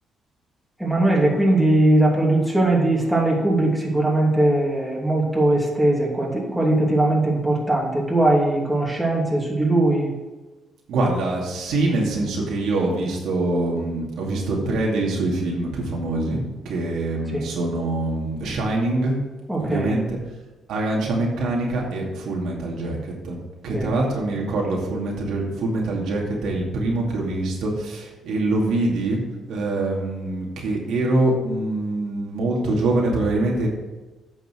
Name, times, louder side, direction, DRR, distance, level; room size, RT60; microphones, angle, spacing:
voice 1, 0.8-10.1 17.3-17.4 19.5-20.0 23.7-24.0, right 1 dB, 5° right, -3 dB, 2.8 m, -20 dB
voice 2, 10.9-19.2 19.6-20.2 20.7-23.4 23.6-29.2 29.5-33.7, right 2 dB, 80° right, -2 dB, 2.4 m, -24 dB
9.1 x 6.0 x 6.3 m, 1.2 s
cardioid pair, 90°, 0 cm